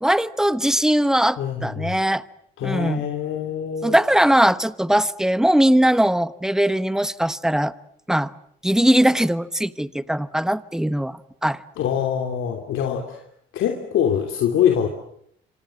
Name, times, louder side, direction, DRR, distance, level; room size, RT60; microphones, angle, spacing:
voice 1, 0.0-2.2 2.6-3.1 3.8-7.7 8.1-8.3 8.6-11.6, right 1 dB, 5° right, 1.1 m, -20 dB
voice 2, 1.4-1.9 2.6-4.0 11.8-13.2 13.5-14.9, left 9 dB, 80° left, 2.9 m, -24 dB
27.0 x 25.5 x 7.7 m
cardioid pair, 90°, 20 cm